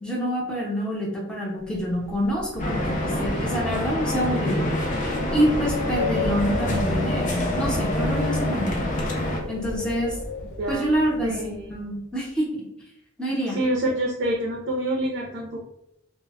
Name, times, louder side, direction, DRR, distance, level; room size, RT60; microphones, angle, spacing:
voice 1, 0.0-4.7 5.3-8.9 9.5-10.2 10.7-12.5 13.2-13.6, equal, 5° left, -4 dB, 0.7 m, -26 dB
Wind, 1.7-11.8, left 2 dB, 90° left, 0.6 m, -33 dB
sound 1, 2.6-9.4, left 1 dB, 40° left, 0.5 m, -27 dB
voice 2, 10.4-10.9 11.2-11.7 13.5-15.6, right 1 dB, 60° right, -1 dB, 0.5 m, -27 dB
2.1 x 2.0 x 3.4 m, 0.80 s
head